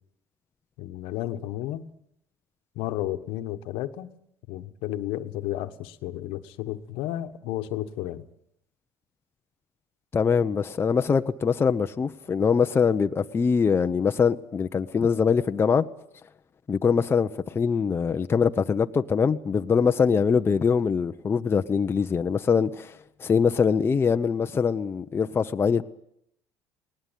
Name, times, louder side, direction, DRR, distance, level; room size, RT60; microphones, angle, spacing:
voice 1, 0.8-1.8 2.7-4.1 4.5-8.2, left 14 dB, 75° left, 1.4 m, -32 dB
voice 2, 10.1-15.8 16.7-25.8, left 6 dB, 25° left, 0.8 m, -23 dB
19.5 x 19.0 x 9.3 m
supercardioid pair, 105°, 9 cm